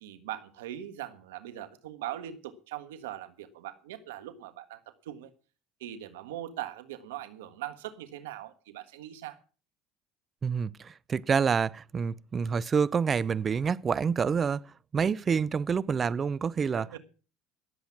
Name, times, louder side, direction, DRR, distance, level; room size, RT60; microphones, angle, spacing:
voice 1, 0.0-5.3 5.8-9.4 16.7-17.0, right 12 dB, 85° right, 1.5 m, -41 dB
voice 2, 10.4-17.0, right 6 dB, 35° right, 0.6 m, -28 dB
18.5 x 8.0 x 5.9 m
hypercardioid pair, 75°, 0 cm